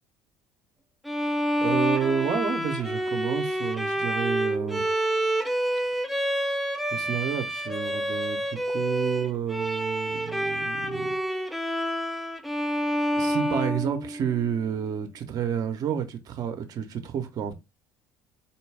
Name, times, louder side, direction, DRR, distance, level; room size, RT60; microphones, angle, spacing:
Bowed string instrument, 1.1-14.5, equal, ahead, 0.6 m, -28 dB
voice 1, 1.6-4.9 6.9-11.2 13.1-17.6, right 8 dB, 55° right, 0.8 m, -30 dB
4.3 x 2.2 x 3.3 m
hypercardioid pair, 75°, 8 cm